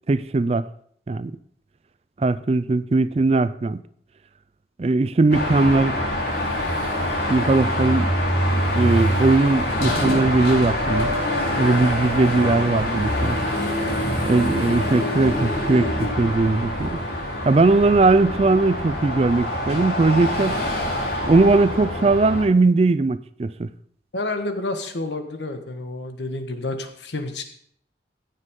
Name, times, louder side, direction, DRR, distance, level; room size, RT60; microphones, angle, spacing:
voice 1, 0.1-0.7 1.1-1.3 2.2-3.8 4.8-6.0 6.7-6.8 7.3-8.1 8.8-11.1 11.6-13.4 14.2-17.0 17.4-20.6 21.2-23.7, right 3 dB, 35° right, 0.4 m, -19 dB
Car passing by / Traffic noise roadway noise / Engine, 5.3-22.4, equal, 70° left, 3.8 m, -25 dB
voice 2, 24.1-27.4, left 2 dB, 90° left, 1.5 m, -29 dB
15.5 x 7.6 x 3.7 m
head